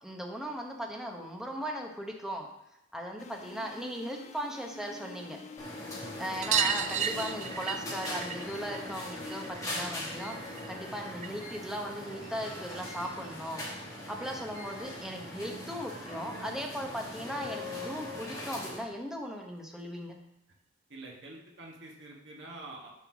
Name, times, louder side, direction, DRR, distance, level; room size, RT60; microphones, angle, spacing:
voice 1, 0.0-2.5 2.9-5.4 6.1-13.6 14.1-20.2, equal, 5° right, 1 dB, 0.8 m, -38 dB
sound 1, 3.2-9.5, left 3 dB, 35° left, 0.5 m, -47 dB
sound 2, 5.6-18.9, left 1 dB, 15° left, 1.9 m, -41 dB
sound 3, 6.4-11.5 11.8-13.0 14.3-14.4 14.6-14.7 15.0-15.1 16.4-16.5 16.8-16.9 17.2-17.3 18.6-18.7 19.4-19.5, right 8 dB, 35° right, 0.4 m, -35 dB
voice 2, 20.9-22.9, right 2 dB, 60° right, -1 dB, 1.6 m, -46 dB
7.1 x 4.4 x 6.0 m, 0.82 s
head